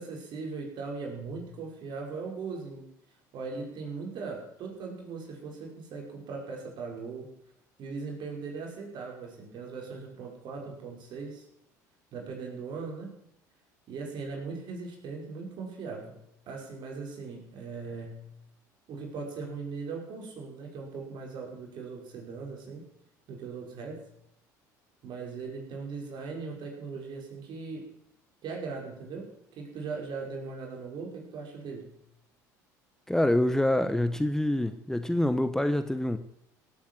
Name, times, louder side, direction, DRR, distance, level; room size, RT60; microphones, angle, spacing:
voice 1, 0.0-2.9 3.3-7.3 7.8-11.4 12.1-13.1 13.9-18.3 18.9-22.8 23.3-24.0 25.0-27.8 28.4-32.0, right 4 dB, 55° right, 0 dB, 5.5 m, -39 dB
voice 2, 33.1-36.2, left 1 dB, 5° left, 11 dB, 1.0 m, -26 dB
17.0 x 8.8 x 7.8 m, 0.78 s
hypercardioid pair, 70°, 9 cm